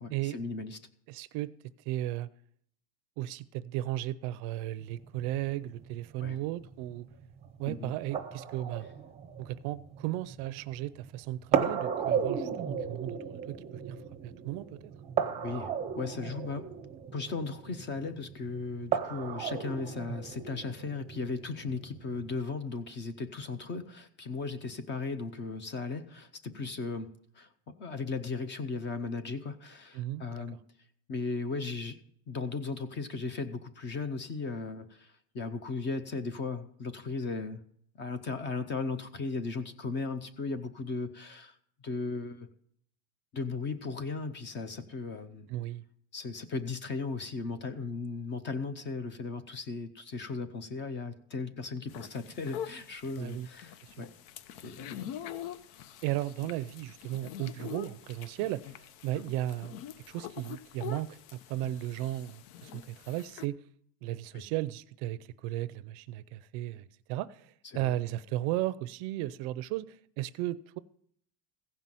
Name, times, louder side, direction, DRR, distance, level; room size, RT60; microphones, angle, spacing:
voice 1, 0.0-0.8 6.2-6.4 7.7-7.9 15.4-16.7 17.1-27.1 27.3-27.5 27.8-30.6 31.1-32.0 32.3-37.6 38.0-41.6 41.8-42.5 43.3-45.5 46.1-54.1 54.6-55.1 64.3-64.4 67.7-68.0, left 4 dB, 25° left, 0.5 m, -36 dB
voice 2, 1.1-1.5 1.9-2.3 3.2-7.1 7.6-8.9 9.4-14.0 14.2-14.8 29.9-30.5 45.5-45.8 53.1-53.5 53.8-53.9 56.0-58.7 59.0-59.8 60.1-63.6 64.0-70.8, right 15 dB, 60° right, 0.5 m, -35 dB
sound 1, 4.8-22.4, right 7 dB, 15° right, 0.7 m, -36 dB
sound 2, 51.9-63.5, left 10 dB, 70° left, 0.8 m, -45 dB
15.5 x 5.5 x 7.5 m
cardioid pair, 175°, 45 cm